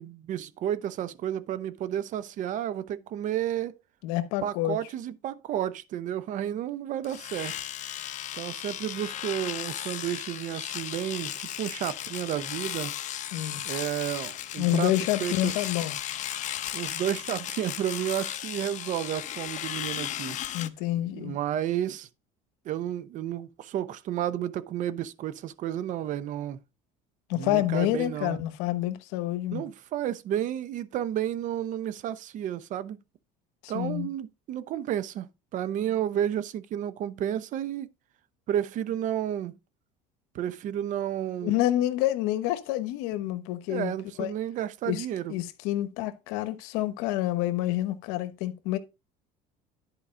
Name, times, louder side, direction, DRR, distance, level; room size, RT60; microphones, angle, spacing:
voice 1, 0.0-3.7 4.4-7.6 8.4-12.9 13.6-14.9 15.2-15.5 16.7-20.4 21.1-22.1 22.6-26.6 27.4-28.4 29.5-33.0 33.7-37.9 38.5-39.6 40.3-41.6 43.7-45.3, right 11 dB, 50° right, 0.7 m, -31 dB
voice 2, 4.0-4.8 13.3-13.6 14.6-16.0 20.5-21.4 27.3-29.7 33.6-34.1 41.4-44.3 44.9-48.8, left 14 dB, 80° left, 1.0 m, -28 dB
Domestic sounds home sounds, 7.0-20.7, left 12 dB, 45° left, 0.7 m, -35 dB
11.0 x 4.7 x 3.7 m
cardioid pair, 120°, 17 cm